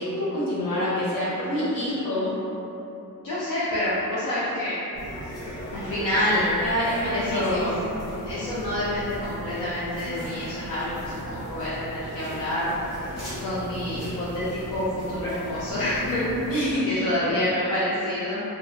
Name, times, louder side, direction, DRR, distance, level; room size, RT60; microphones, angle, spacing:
voice 1, 0.0-2.3 5.5-5.6 5.9-6.1 6.6-7.7 16.5-17.3, equal, 80° left, -10 dB, 1.2 m, -27 dB
voice 2, 3.2-4.8 5.7-6.5 7.1-7.8 8.3-12.7 13.4-16.2 16.9-18.4, left 1 dB, 60° left, -10 dB, 0.6 m, -27 dB
sound 1, 4.9-16.5, equal, 45° left, 1.2 m, -37 dB
2.3 x 2.2 x 3.2 m, 2.9 s
wide cardioid pair, 170°, 33 cm